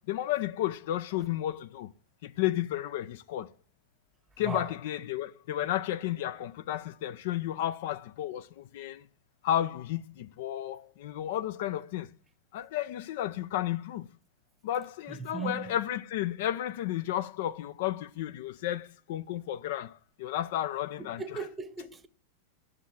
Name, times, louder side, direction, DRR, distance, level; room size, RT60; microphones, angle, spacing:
voice 1, 0.1-1.9 2.2-3.5 4.4-9.1 9.4-12.1 12.5-14.1 14.6-21.4, left 12 dB, 50° left, 0.5 m, -32 dB
voice 2, 15.1-15.7 21.0-22.1, right 5 dB, 15° right, 0.9 m, -38 dB
9.7 x 6.3 x 7.1 m
figure-of-eight pair, 90°, 0 cm